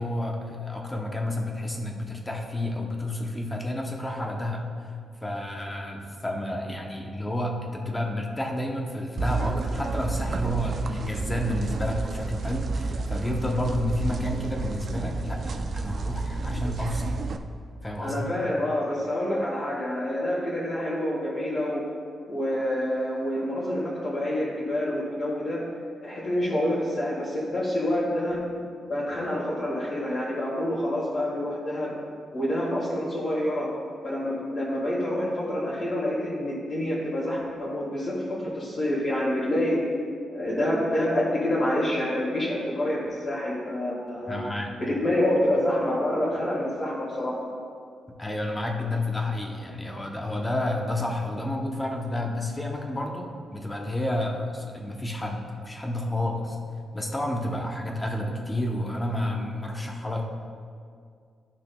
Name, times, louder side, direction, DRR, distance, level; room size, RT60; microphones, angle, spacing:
voice 1, 0.0-4.9 5.2-17.1 17.8-18.3 44.3-44.8 48.2-56.6 56.9-60.2, left 1 dB, 15° left, 0 dB, 0.8 m, -30 dB
sound 1, 9.2-17.4, right 3 dB, 45° right, 0.4 m, -30 dB
voice 2, 18.0-21.9 22.3-25.6 26.0-28.4 28.9-31.9 32.3-33.7 34.0-39.9 40.3-44.4 44.8-47.5, left 1 dB, 40° left, -9 dB, 1.6 m, -27 dB
12.5 x 6.1 x 2.2 m, 2.2 s
wide cardioid pair, 155°, 0 cm